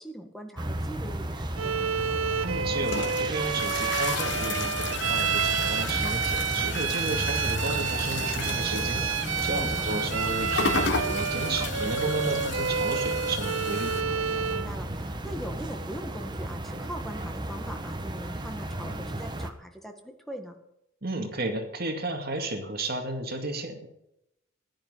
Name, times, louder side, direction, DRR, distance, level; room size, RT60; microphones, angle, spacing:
voice 1, 0.0-2.1 9.5-10.0 14.5-20.6, right 1 dB, ahead, 4 dB, 1.7 m, -41 dB
sound 1, 0.6-19.5, right 1 dB, 20° right, 1.2 m, -34 dB
Bowed string instrument, 1.6-14.7, right 7 dB, 75° right, 0.6 m, -29 dB
sound 2, 2.3-14.0, left 4 dB, 55° left, 1.4 m, -34 dB
voice 2, 2.4-14.0 21.0-23.9, right 2 dB, 45° right, 4 dB, 2.3 m, -33 dB
15.0 x 11.5 x 5.8 m, 0.82 s
head